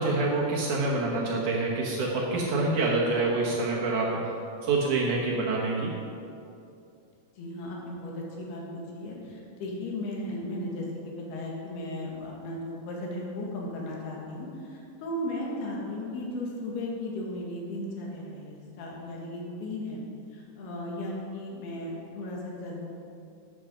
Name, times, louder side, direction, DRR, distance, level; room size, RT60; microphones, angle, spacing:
voice 1, 0.0-4.3 4.6-5.9, right 3 dB, 60° right, -3 dB, 2.3 m, -26 dB
voice 2, 7.4-20.0 20.3-22.9, left 1 dB, 80° left, -2 dB, 3.8 m, -36 dB
12.5 x 8.8 x 5.2 m, 2.6 s
omnidirectional pair, 4.6 m